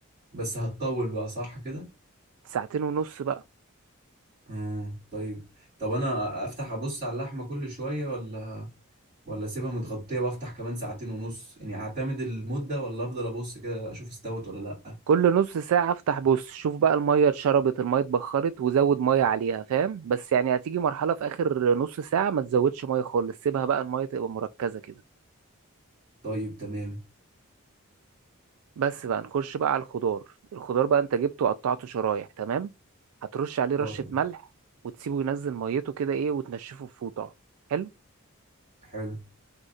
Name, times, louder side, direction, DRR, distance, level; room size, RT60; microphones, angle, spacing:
voice 1, 0.3-1.9 4.5-8.7 9.3-14.9 26.2-27.0 33.8-34.1 38.8-39.2, right 1 dB, 35° right, 2.5 m, -33 dB
voice 2, 2.5-3.4 15.1-24.9 28.8-30.2 30.5-32.7 33.3-34.4 35.0-37.3 37.7-37.9, right 7 dB, 80° right, 0.3 m, -26 dB
6.2 x 2.7 x 2.4 m
head